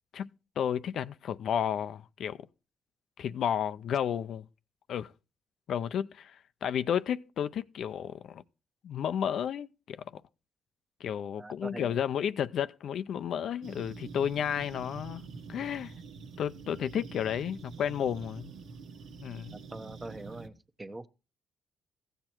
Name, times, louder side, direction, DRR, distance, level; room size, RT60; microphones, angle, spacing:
voice 1, 0.1-2.4 3.2-4.4 4.9-5.1 5.7-8.4 8.8-10.2 11.0-15.2 15.5-15.9 16.4-18.5 19.2-19.6, left 9 dB, 65° left, 0.5 m, -32 dB
voice 2, 11.3-12.0 19.5-21.1, right 2 dB, 20° right, 0.9 m, -43 dB
sound 1, 13.6-20.5, right 5 dB, 85° right, 1.4 m, -46 dB
15.0 x 7.9 x 4.5 m
cardioid pair, 90°, 0 cm